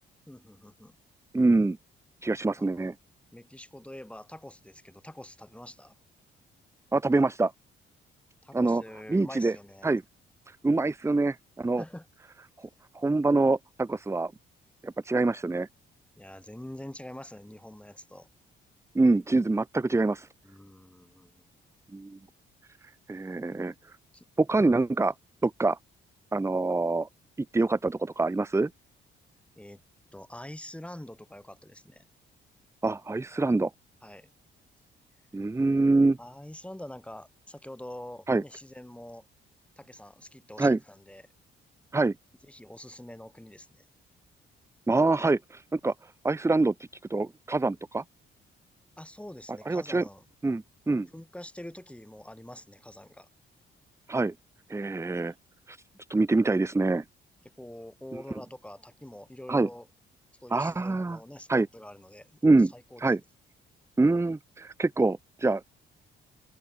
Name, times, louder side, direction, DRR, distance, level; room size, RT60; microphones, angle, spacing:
voice 1, 0.3-1.0 2.6-2.7 3.3-6.0 8.4-9.9 11.8-12.1 16.2-18.3 20.4-21.5 24.1-24.2 29.6-29.8 30.1-32.0 34.0-34.3 36.2-39.3 39.8-41.2 42.5-43.9 49.0-50.2 51.1-53.3 57.6-59.9 60.4-63.1, left 1 dB, 5° left, 5.4 m, -45 dB
voice 2, 1.3-1.8 2.2-2.9 6.9-7.5 8.5-8.8 9.1-9.6 9.8-10.0 10.5-11.8 12.6-12.7 12.9-14.3 14.8-15.7 18.9-20.3 21.9-22.2 23.1-23.7 24.4-25.1 25.4-25.8 26.3-27.1 27.4-28.7 32.8-33.7 35.3-36.2 38.3-38.4 40.6-40.8 41.9-42.1 44.9-46.7 47.1-48.0 49.7-50.0 50.4-51.1 54.1-54.3 54.7-55.3 55.7-55.8 56.1-57.0 59.5-59.7 60.5-61.2 61.5-61.7 62.4-62.7 63.0-63.2 64.0-65.6, right 3 dB, 15° right, 0.8 m, -25 dB
open air
cardioid pair, 90°, 21 cm